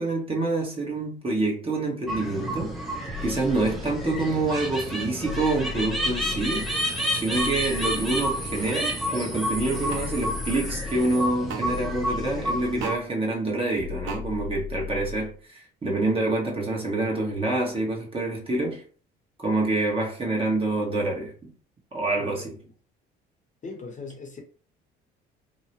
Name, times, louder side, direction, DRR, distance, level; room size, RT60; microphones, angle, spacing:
voice 1, 0.0-2.8 3.2-6.7 7.1-18.8 19.4-21.5 21.9-22.6, right 2 dB, 25° right, 1.1 m, -27 dB
sound 1, 2.1-12.9, equal, ahead, 0.8 m, -30 dB
sound 2, 3.0-4.4 5.2-6.8 7.3-8.7 9.5-11.1 11.6-13.0 13.8-15.4, left 7 dB, 75° left, 0.9 m, -37 dB
sound 3, 8.7-8.8 9.9-10.0 11.5-11.7 12.8-13.0 14.1-14.2, right 6 dB, 65° right, 0.7 m, -34 dB
voice 2, 22.2-22.5 23.6-24.4, left 4 dB, 35° left, 0.9 m, -39 dB
2.8 x 2.1 x 2.9 m
supercardioid pair, 75°, 21 cm